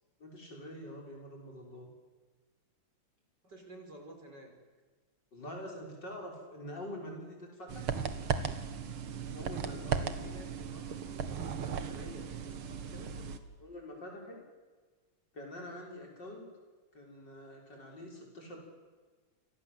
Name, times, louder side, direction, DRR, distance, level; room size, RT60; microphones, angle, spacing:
voice 1, 0.2-1.9 5.3-7.9 9.3-10.2 13.1-13.3 13.6-14.4 15.3-16.5 17.0-18.6, left 1 dB, 55° left, 1 dB, 6.9 m, -45 dB
voice 2, 3.4-4.5 9.8-13.1, right 1 dB, 50° right, 3 dB, 5.5 m, -51 dB
sound 1, 7.7-13.4, right 6 dB, 80° right, 2.5 m, -36 dB
29.5 x 24.0 x 8.0 m, 1.4 s
omnidirectional pair, 2.3 m